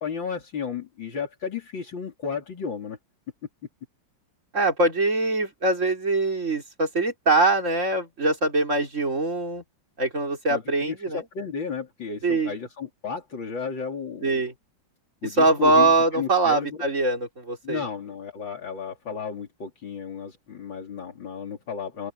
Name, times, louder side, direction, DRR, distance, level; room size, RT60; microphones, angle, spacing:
voice 1, 0.0-3.0 10.5-14.5 15.2-16.8 17.6-22.1, left 6 dB, 75° left, 3.9 m, -33 dB
voice 2, 4.5-9.6 10.0-11.2 12.2-12.5 14.2-14.5 15.4-17.8, right 2 dB, 40° right, 4.5 m, -23 dB
open air
omnidirectional pair, 2.1 m